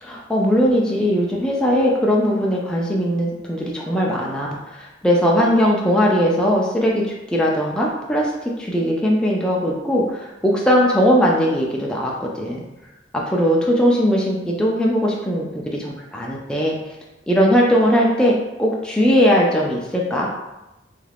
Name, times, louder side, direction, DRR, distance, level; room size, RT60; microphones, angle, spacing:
voice 1, 0.1-12.6 13.1-15.5 15.8-16.8 17.3-18.3 18.6-20.3, equal, 5° left, -3 dB, 0.3 m, -19 dB
3.1 x 2.4 x 3.3 m, 0.96 s
head